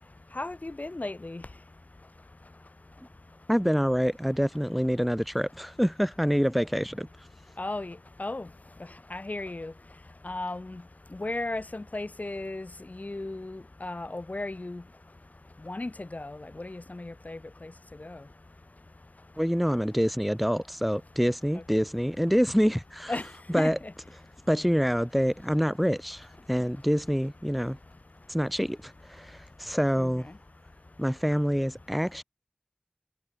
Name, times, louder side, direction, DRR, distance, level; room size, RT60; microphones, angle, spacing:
voice 1, 0.3-1.4 7.6-8.5 8.8-9.7 10.2-10.8 11.1-14.8 15.6-17.7 18.0-18.3 21.5-21.6 23.1-23.9 30.0-30.4, left 2 dB, 75° left, 6.7 m, -36 dB
voice 2, 3.5-7.1 19.4-23.1 23.5-23.8 24.5-27.8 28.3-30.3 31.0-32.2, equal, ahead, 3.7 m, -26 dB
wide cardioid pair, 45°, 3 cm